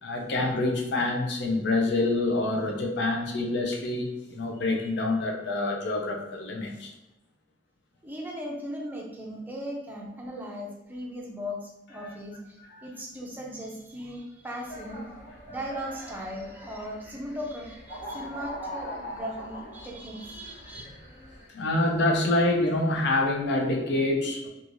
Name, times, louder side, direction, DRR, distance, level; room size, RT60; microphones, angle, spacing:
voice 1, 0.0-6.9 20.7-20.8 21.5-24.5, left 2 dB, 65° left, 1 dB, 0.5 m, -26 dB
voice 2, 8.0-15.0 15.5-20.8, equal, 10° right, -2 dB, 0.5 m, -38 dB
sound 1, 14.6-21.5, equal, 40° left, 0.8 m, -42 dB
3.1 x 2.4 x 2.5 m, 0.93 s
head